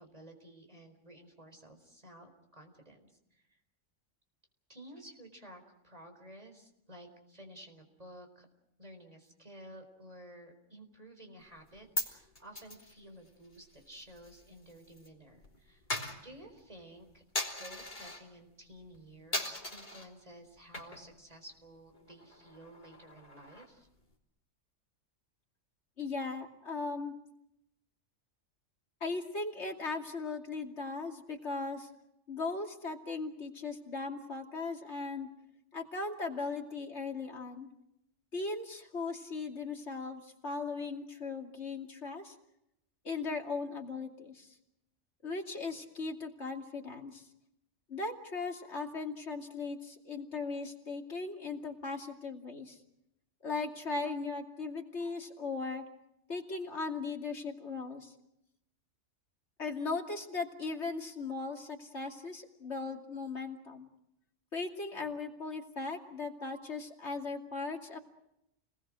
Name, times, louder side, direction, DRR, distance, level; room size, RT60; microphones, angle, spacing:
voice 1, 0.0-3.6 4.7-8.5 8.8-15.8 16.2-17.2 17.5-23.9, right 1 dB, 30° right, 5 dB, 4.4 m, -53 dB
Coin (dropping), 11.5-15.1 15.3-18.3 18.7-19.0 19.3-20.1 20.6-21.2 21.5-21.6 21.9-23.9, left 1 dB, 35° left, 3.6 m, -40 dB
voice 2, 26.0-27.1 29.0-31.9 32.3-35.3 35.7-37.7 38.3-42.3 43.0-44.6 45.2-47.3 47.9-52.8 53.4-55.8 56.3-58.1 59.6-63.9 64.5-68.0, left 3 dB, 60° left, 2 dB, 3.0 m, -38 dB
29.5 x 20.5 x 6.3 m, 0.82 s
omnidirectional pair, 1.3 m